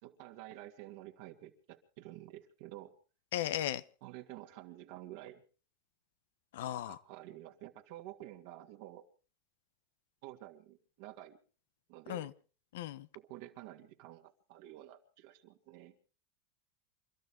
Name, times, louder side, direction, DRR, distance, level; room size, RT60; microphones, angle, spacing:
voice 1, 0.0-2.9 4.0-5.4 6.9-9.1 10.2-11.4 11.9-12.3 13.1-15.9, right 14 dB, 65° right, 4 dB, 2.6 m, -50 dB
voice 2, 3.3-3.8 6.5-7.0 12.1-12.3 12.7-13.1, left 12 dB, 75° left, 15 dB, 0.9 m, -36 dB
28.5 x 12.5 x 3.8 m, 0.37 s
hypercardioid pair, 110°, 0 cm